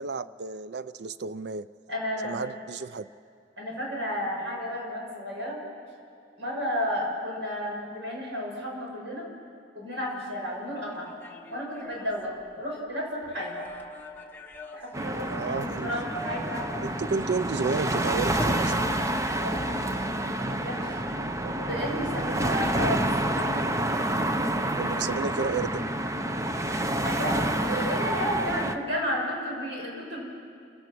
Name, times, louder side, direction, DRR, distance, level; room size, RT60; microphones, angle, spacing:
voice 1, 0.0-1.7 2.2-3.1 15.3-15.9 16.8-18.9 24.7-25.8, right 4 dB, 60° right, 15 dB, 0.4 m, -31 dB
voice 2, 1.9-2.3 3.6-5.6 6.4-9.2 9.7-11.1 11.5-13.6 14.7-16.6 19.4-19.9 20.5-23.1 26.7-30.2, equal, 85° right, -2 dB, 6.6 m, -32 dB
sound 1, 10.9-12.8 13.2-15.6 16.1-17.1 18.4-20.0 23.3-24.0, left 2 dB, 10° left, 1.1 m, -43 dB
sound 2, 14.9-28.8, right 1 dB, 15° right, 0.7 m, -28 dB
29.5 x 16.5 x 6.2 m, 2.4 s
head